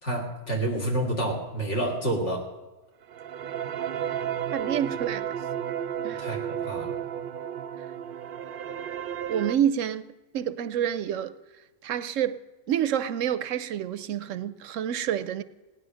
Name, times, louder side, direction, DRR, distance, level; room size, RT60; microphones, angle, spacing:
voice 1, 0.0-2.5 6.2-6.9, right 1 dB, 60° left, 2.9 m, -29 dB
sound 1, 3.0-9.6, right 9 dB, 60° right, 0.6 m, -33 dB
voice 2, 4.5-5.3 6.0-6.2 9.3-10.1 10.3-11.3 11.8-12.4 12.7-15.4, right 9 dB, 75° right, 1.0 m, -28 dB
17.5 x 9.8 x 6.2 m
omnidirectional pair, 1.4 m